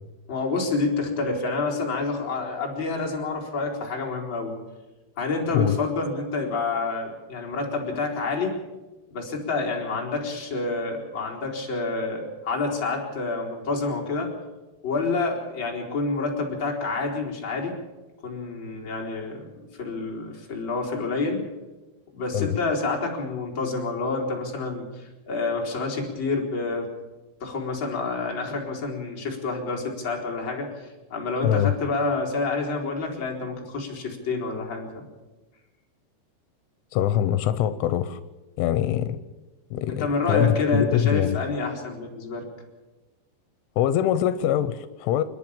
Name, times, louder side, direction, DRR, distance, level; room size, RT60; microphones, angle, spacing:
voice 1, 0.3-4.5 5.2-8.6 9.1-14.3 14.8-17.7 18.2-21.4 22.1-26.9 27.4-34.9 39.9-42.4, left 3 dB, 25° left, -1 dB, 4.1 m, -28 dB
voice 2, 36.9-38.2 38.6-39.2 39.7-40.0 40.3-41.4 43.8-45.2, left 11 dB, 85° left, 13 dB, 3.2 m, -23 dB
29.0 x 11.0 x 8.7 m, 1.1 s
omnidirectional pair, 5.5 m